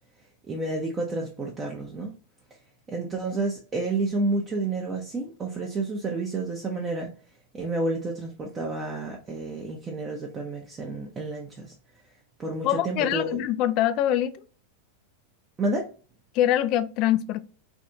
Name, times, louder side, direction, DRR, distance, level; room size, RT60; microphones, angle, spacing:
voice 1, 0.5-2.1 2.9-7.1 7.5-11.7 12.4-13.4 15.6-15.9, right 2 dB, 20° right, 0.6 m, -30 dB
voice 2, 12.6-14.3 16.3-17.4, left 12 dB, 40° left, 0.3 m, -24 dB
3.4 x 2.5 x 2.7 m
figure-of-eight pair, 90°, 0 cm